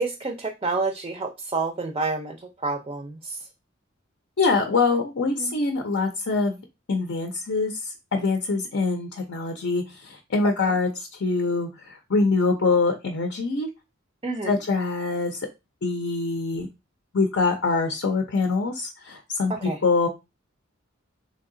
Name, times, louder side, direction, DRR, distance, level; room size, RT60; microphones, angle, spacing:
voice 1, 0.0-2.4 2.6-3.4 5.4-5.6 10.6-10.7 14.2-14.5 19.5-19.8, right 3 dB, 25° right, 5 dB, 0.5 m, -28 dB
voice 2, 4.4-6.6 6.9-7.7 8.1-10.9 11.2-13.7 14.5-15.4 15.8-16.7 17.1-20.1, left 3 dB, 60° left, 4 dB, 0.6 m, -24 dB
3.3 x 2.7 x 3.7 m, 0.25 s
head